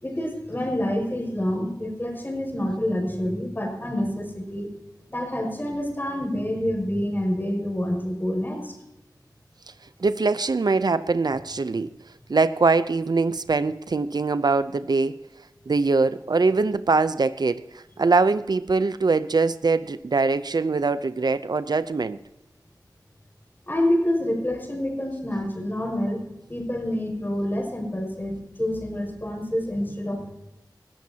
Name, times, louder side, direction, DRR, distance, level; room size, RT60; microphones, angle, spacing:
voice 1, 0.0-4.7 5.1-8.7 23.7-26.2 26.5-30.3, left 1 dB, 25° left, 3 dB, 5.3 m, -27 dB
voice 2, 10.0-11.9 12.3-15.2 15.7-22.2, right 3 dB, 70° right, 14 dB, 0.6 m, -22 dB
19.0 x 14.0 x 2.8 m, 0.89 s
wide cardioid pair, 65°, 7 cm